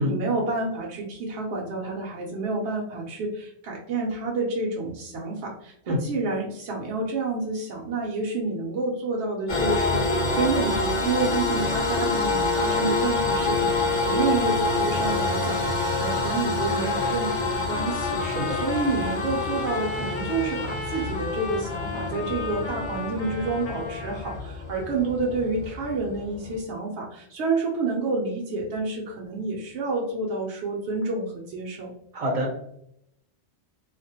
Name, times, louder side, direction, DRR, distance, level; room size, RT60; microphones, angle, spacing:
voice 1, 0.0-31.9, right 3 dB, 80° right, -2 dB, 0.8 m, -29 dB
sound 1, 9.5-26.6, left 3 dB, 35° left, 0.6 m, -27 dB
Trumpet, 16.7-24.4, left 4 dB, 65° left, 0.8 m, -35 dB
voice 2, 18.2-18.6 32.1-32.6, equal, 45° right, 0 dB, 0.5 m, -27 dB
2.3 x 2.1 x 2.7 m, 0.72 s
omnidirectional pair, 1.1 m